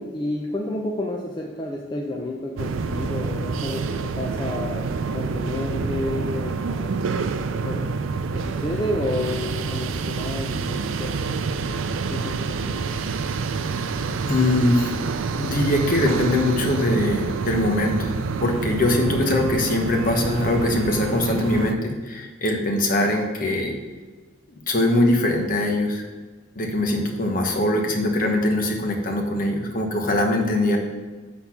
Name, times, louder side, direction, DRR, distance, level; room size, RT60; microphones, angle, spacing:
voice 1, 0.0-7.9 8.3-11.1 12.1-12.8, left 1 dB, 25° left, -1 dB, 0.5 m, -31 dB
sound 1, 2.6-21.7, right 4 dB, 80° right, 0.4 m, -27 dB
voice 2, 14.3-14.9 15.4-18.1 18.4-23.8 24.5-26.0 26.5-30.8, left 1 dB, 45° left, 2 dB, 1.1 m, -22 dB
8.0 x 4.1 x 5.8 m, 1.3 s
head